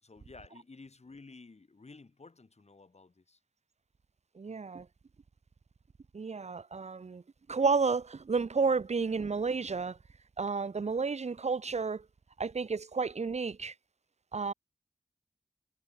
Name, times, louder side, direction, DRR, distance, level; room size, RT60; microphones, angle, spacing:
voice 1, 0.0-3.4, left 3 dB, 70° left, 2.0 m, -53 dB
voice 2, 4.4-4.9 6.1-7.2 7.5-10.0 10.4-12.0 12.4-13.7 14.3-14.5, right 4 dB, 75° right, 0.6 m, -31 dB
wide cardioid pair, 60°, 12 cm